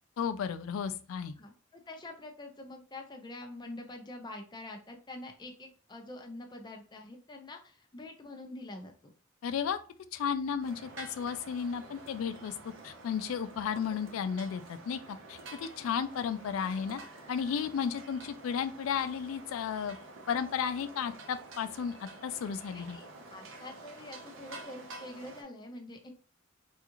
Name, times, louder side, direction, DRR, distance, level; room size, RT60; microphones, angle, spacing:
voice 1, 0.2-1.3 9.4-9.8 10.1-12.5 12.8-17.0 17.3-20.0 20.3-23.0, left 7 dB, 85° left, 10 dB, 0.3 m, -33 dB
voice 2, 1.4-8.9 15.8-15.9 22.7-26.1, left 2 dB, 20° left, 3 dB, 0.6 m, -46 dB
sound 1, 10.6-25.4, right 2 dB, 65° right, 0.7 m, -49 dB
3.5 x 2.4 x 2.9 m, 0.38 s
head